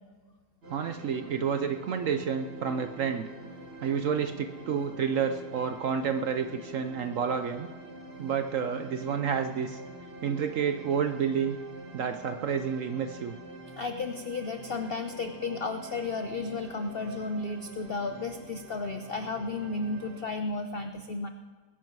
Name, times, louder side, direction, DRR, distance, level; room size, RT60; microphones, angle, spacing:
sound 1, 0.6-20.2, right 2 dB, 35° right, 2.2 m, -46 dB
voice 1, 0.7-3.3 3.8-7.7 8.2-9.8 10.2-11.6 11.9-13.4, right 7 dB, 65° right, 8 dB, 0.8 m, -30 dB
voice 2, 13.8-21.3, left 3 dB, 80° left, 7 dB, 0.5 m, -33 dB
21.0 x 10.5 x 4.6 m, 1.4 s
omnidirectional pair, 1.9 m